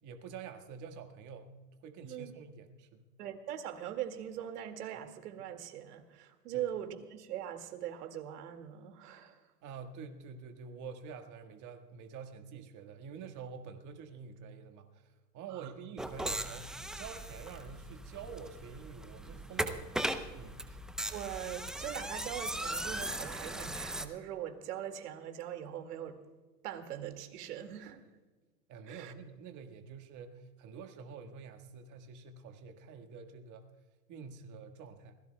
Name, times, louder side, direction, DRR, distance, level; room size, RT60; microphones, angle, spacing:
voice 1, 0.0-1.5 1.8-3.1 6.5-6.7 9.6-19.9 20.4-20.6 28.7-33.7 34.1-35.1, right 6 dB, 40° right, 1.7 m, -47 dB
voice 2, 3.2-9.4 15.5-15.7 21.1-26.2 26.6-28.0 28.9-29.1, right 10 dB, 70° right, 2.2 m, -41 dB
sound 1, 16.0-24.0, right 1 dB, ahead, 0.5 m, -38 dB
27.5 x 17.5 x 2.3 m
hypercardioid pair, 110°, 48 cm